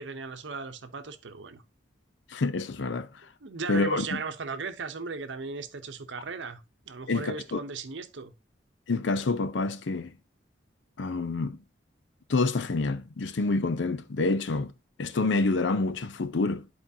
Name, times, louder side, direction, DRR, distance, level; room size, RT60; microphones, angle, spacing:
voice 1, 0.0-1.6 3.4-8.3, right 4 dB, 85° right, 0.8 m, -37 dB
voice 2, 2.3-3.1 3.7-4.0 7.1-7.6 8.9-10.1 11.0-11.6 12.3-14.7 15.0-16.6, left 3 dB, 80° left, 0.6 m, -27 dB
11.0 x 4.3 x 2.7 m
head